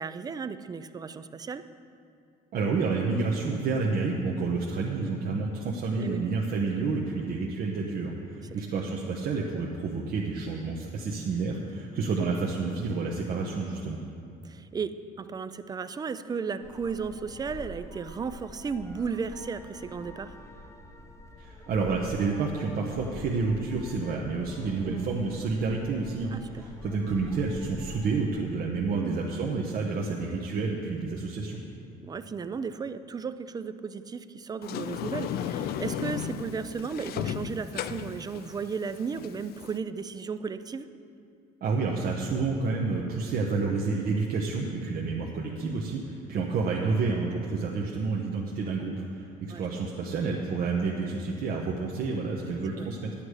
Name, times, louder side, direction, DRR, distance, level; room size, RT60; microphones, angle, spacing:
voice 1, 0.0-1.7 6.0-6.3 14.4-20.3 24.8-25.0 26.3-26.6 28.9-29.2 32.0-40.9 46.3-46.4 49.5-49.7 52.7-52.9, right 5 dB, 25° right, 12 dB, 0.4 m, -35 dB
voice 2, 2.5-14.0 21.4-31.6 41.6-53.1, right 4 dB, 60° right, -2 dB, 1.1 m, -29 dB
sound 1, 16.6-28.2, left 2 dB, 15° left, 1.0 m, -46 dB
Sliding door, 34.6-39.8, left 9 dB, 65° left, 0.5 m, -35 dB
11.0 x 8.6 x 4.9 m, 2.5 s
cardioid pair, 110°, 17 cm